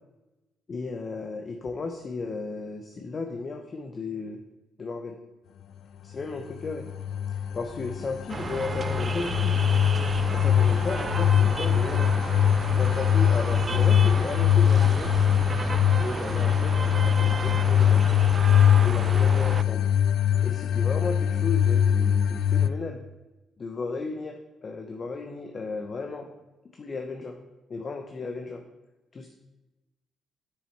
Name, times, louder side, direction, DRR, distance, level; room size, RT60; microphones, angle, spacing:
voice 1, 0.7-4.4 4.8-5.2 6.0-6.9 7.5-9.5 10.3-12.1 12.8-15.1 16.0-18.0 18.8-19.9 20.4-23.0 23.6-26.3 26.8-27.4 27.7-28.6 29.1-29.3, left 4 dB, 40° left, 4 dB, 0.8 m, -34 dB
sound 1, 6.4-22.7, left 9 dB, 70° left, 0.3 m, -22 dB
sound 2, 8.3-19.6, right 4 dB, 35° right, 0.4 m, -33 dB
7.8 x 6.8 x 4.4 m, 1.0 s
cardioid pair, 90°, 0 cm